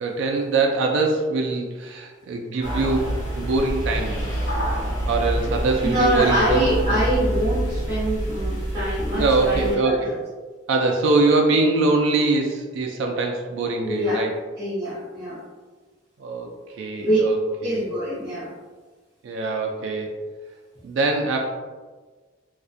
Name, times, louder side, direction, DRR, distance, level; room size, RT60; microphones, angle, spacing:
voice 1, 0.0-4.3 5.1-7.0 9.2-10.1 10.7-14.3 16.2-17.4 17.6-17.8 19.2-20.1 20.8-21.5, right 3 dB, 85° right, 2 dB, 0.3 m, -23 dB
sound 1, 2.6-9.8, right 1 dB, 80° left, 1.1 m, -27 dB
voice 2, 5.8-10.2 13.8-14.2 14.6-15.4 17.0-17.2 17.6-18.5, right 1 dB, 20° right, -14 dB, 0.6 m, -24 dB
2.4 x 2.1 x 2.5 m, 1.4 s
head